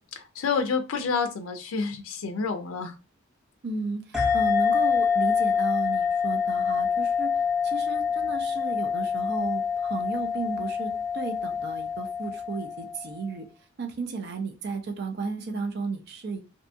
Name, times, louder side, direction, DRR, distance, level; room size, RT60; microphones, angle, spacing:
voice 1, 0.2-2.9, left 5 dB, 80° left, 6 dB, 0.4 m, -29 dB
voice 2, 3.6-13.5 13.8-16.4, right 4 dB, 55° right, 5 dB, 0.5 m, -34 dB
sound 1, 4.1-13.2, left 6 dB, 5° right, 0.6 m, -26 dB
2.6 x 2.2 x 2.5 m, 0.33 s
head